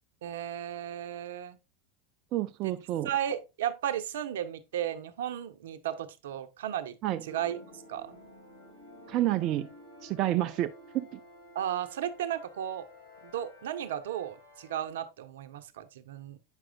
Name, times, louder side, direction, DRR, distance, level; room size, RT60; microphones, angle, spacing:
voice 1, 0.2-1.6 2.6-2.7 3.0-7.0 7.2-8.2 11.5-12.9 13.2-16.4, right 10 dB, 80° right, 0.8 m, -35 dB
voice 2, 2.3-3.1 7.0-7.2 9.1-9.7 10.0-11.2, right 14 dB, 50° right, 0.5 m, -29 dB
sound 1, 7.3-14.9, equal, 75° left, 4.3 m, -52 dB
8.9 x 6.1 x 2.2 m
hypercardioid pair, 100°, 0 cm